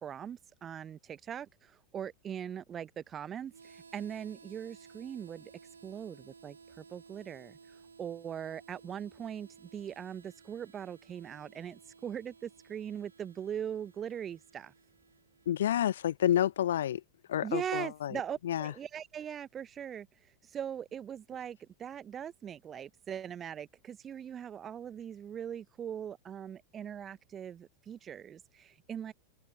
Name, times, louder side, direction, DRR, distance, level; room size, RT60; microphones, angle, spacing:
voice 1, 0.0-5.5 5.8-14.7 17.4-29.1, right 9 dB, 25° right, 0.6 m, -41 dB
Harmonica, 3.5-16.1, right 5 dB, 75° right, 2.9 m, -57 dB
voice 2, 15.5-17.0 17.3-18.1 18.4-18.7, left 11 dB, 60° left, 0.5 m, -29 dB
open air
figure-of-eight pair, 90°, 0 cm